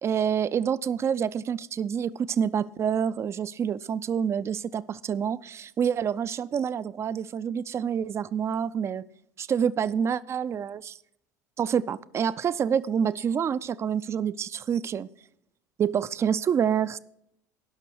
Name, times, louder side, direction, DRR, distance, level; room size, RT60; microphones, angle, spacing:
voice 1, 0.0-9.0 9.4-11.0 11.6-15.1 15.8-17.0, right 8 dB, 30° right, 17 dB, 0.4 m, -27 dB
18.0 x 6.0 x 4.7 m, 0.76 s
figure-of-eight pair, 70°, 10 cm